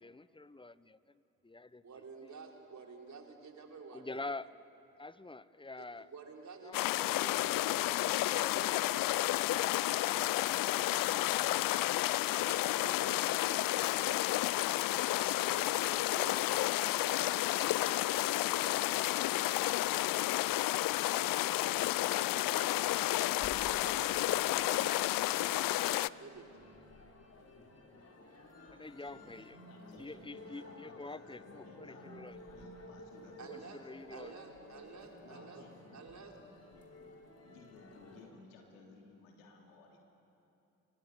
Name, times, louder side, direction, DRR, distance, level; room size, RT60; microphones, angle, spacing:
voice 1, 0.0-2.3 3.9-4.5 5.0-6.1 6.6-7.0 8.2-8.9 28.7-29.6 30.0-32.4 33.4-34.3, left 2 dB, 15° left, 17 dB, 1.0 m, -47 dB
voice 2, 1.7-4.2 5.8-12.0 12.5-14.2 15.2-19.0 19.2-19.4 21.0-21.5 22.0-23.0 23.5-26.5 33.4-33.8 34.1-35.6 35.9-36.3, right 4 dB, 45° right, 1 dB, 4.4 m, -51 dB
sound 1, 6.7-26.1, left 17 dB, 60° left, 0.6 m, -31 dB
sound 2, 9.3-10.9 12.9-14.0, right 6 dB, 75° right, 3.1 m, -63 dB
sound 3, 20.8-38.3, left 2 dB, 40° left, 4.2 m, -54 dB
voice 3, 28.8-34.0 35.2-40.0, left 3 dB, 80° left, 1 dB, 3.4 m, -59 dB
27.0 x 24.5 x 8.3 m, 2.9 s
hypercardioid pair, 40°, 39 cm